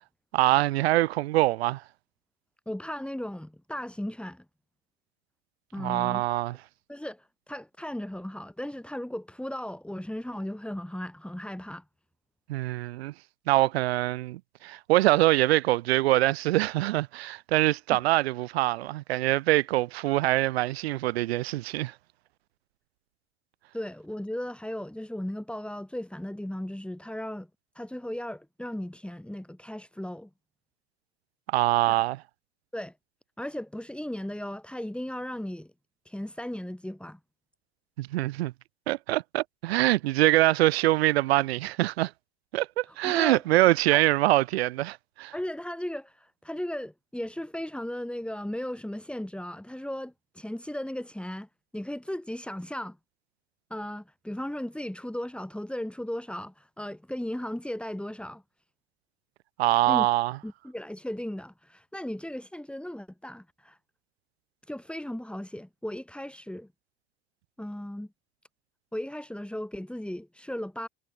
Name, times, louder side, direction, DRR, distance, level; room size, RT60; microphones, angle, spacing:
voice 1, 0.3-1.8 5.8-6.6 12.5-13.1 13.5-21.9 31.5-32.2 38.0-38.5 38.9-42.1 42.5-45.3 59.6-60.4, right 17 dB, 65° right, 0.9 m, -24 dB
voice 2, 2.7-4.4 5.7-6.2 6.9-11.8 17.9-18.0 23.7-27.5 27.7-30.3 31.9-32.0 32.7-32.9 33.4-35.7 36.1-37.2 43.0-43.4 43.9-44.0 45.3-51.5 51.7-53.0 53.7-58.4 59.9-60.1 60.4-63.8 64.7-66.7 67.6-68.1 68.9-70.9, left 1 dB, 5° left, 7.9 m, -36 dB
figure-of-eight pair, 70°, 33 cm